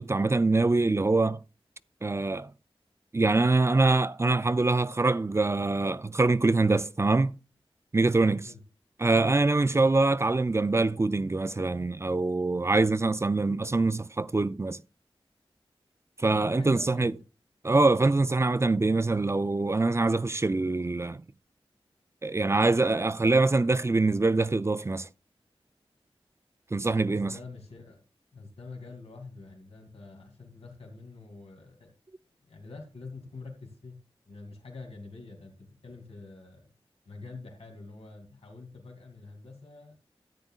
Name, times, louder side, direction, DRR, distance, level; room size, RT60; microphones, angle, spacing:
voice 1, 0.0-1.4 2.0-2.5 3.1-7.4 7.9-8.5 9.0-14.8 16.2-17.1 17.6-21.2 22.2-25.1 26.7-27.3, right 3 dB, 30° right, 0.4 m, -24 dB
voice 2, 16.6-17.2 27.1-28.0 28.3-31.9 32.5-34.0 34.3-36.7 37.1-40.0, left 3 dB, 90° left, 2.6 m, -46 dB
13.5 x 9.3 x 2.4 m
wide cardioid pair, 95°, 10 cm